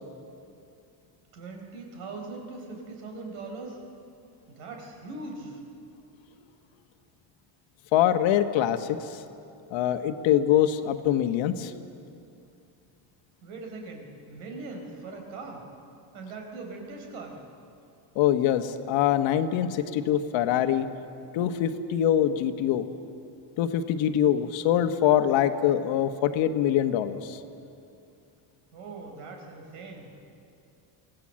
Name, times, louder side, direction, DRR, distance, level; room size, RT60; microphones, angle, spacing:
voice 1, 1.3-3.8 4.5-5.6 13.4-15.7 16.1-17.4 28.7-30.1, right 3 dB, 85° right, 2 dB, 4.4 m, -40 dB
voice 2, 7.9-9.2 9.7-11.7 18.1-20.9 21.3-22.9 23.6-27.4, left 10 dB, 65° left, 9 dB, 1.4 m, -24 dB
24.5 x 16.5 x 7.6 m, 2.6 s
cardioid pair, 120°, 49 cm